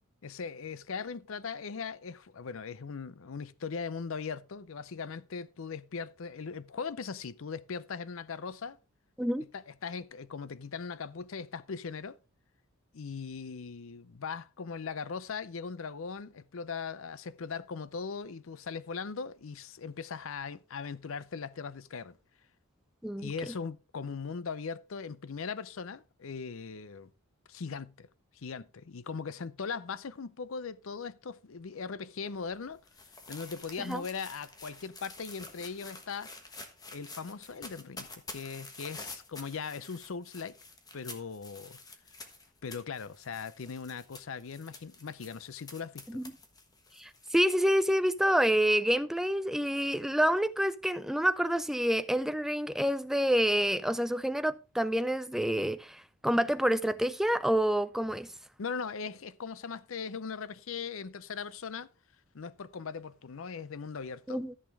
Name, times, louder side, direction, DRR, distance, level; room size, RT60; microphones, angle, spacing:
voice 1, 0.2-8.8 9.5-12.2 12.9-22.2 23.2-27.1 27.5-28.1 28.3-32.8 33.3-36.3 36.9-40.5 40.9-41.8 42.6-46.2 58.6-61.9 62.3-64.4, left 5 dB, 65° left, 0.6 m, -39 dB
sound 1, 32.2-47.3, left 3 dB, 15° left, 1.3 m, -49 dB
voice 2, 47.0-58.3 64.3-64.5, equal, ahead, 0.4 m, -28 dB
13.5 x 6.6 x 3.5 m
head